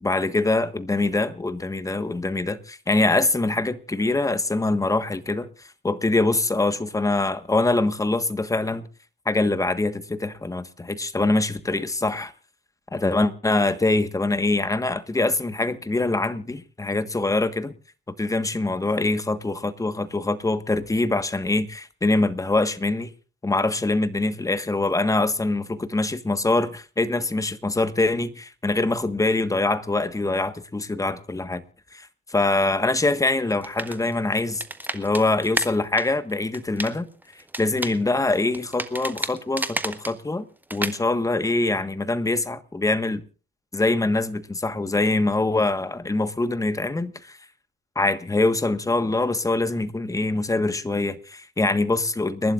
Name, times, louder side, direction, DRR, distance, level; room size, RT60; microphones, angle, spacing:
voice 1, 0.0-8.9 9.2-12.3 12.9-17.7 18.2-23.1 23.4-31.6 31.9-34.6 34.9-37.1 37.6-40.5 40.7-43.2 43.7-47.4 47.9-52.5, left 2 dB, 15° left, 1.4 m, -24 dB
sound 1, 33.5-35.7 36.0-36.9 37.2-40.1 40.7-41.0, right 1 dB, 10° right, 1.5 m, -31 dB
30.0 x 12.0 x 2.5 m
cardioid pair, 90°, 20 cm